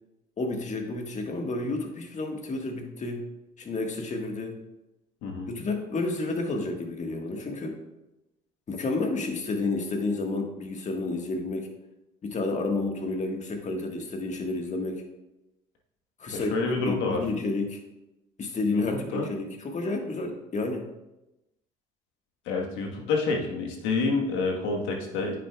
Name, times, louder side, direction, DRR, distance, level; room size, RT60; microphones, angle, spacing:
voice 1, 0.4-3.2 3.6-4.6 5.5-7.8 8.7-11.7 12.2-15.0 16.2-16.5 16.9-17.8 18.4-20.8, left 3 dB, 35° left, 2 dB, 1.6 m, -30 dB
voice 2, 16.3-17.2 18.7-18.8 19.1-19.3 22.5-25.4, left 3 dB, 70° left, 1 dB, 1.4 m, -28 dB
9.3 x 6.4 x 2.4 m, 0.94 s
hypercardioid pair, 65°, 20 cm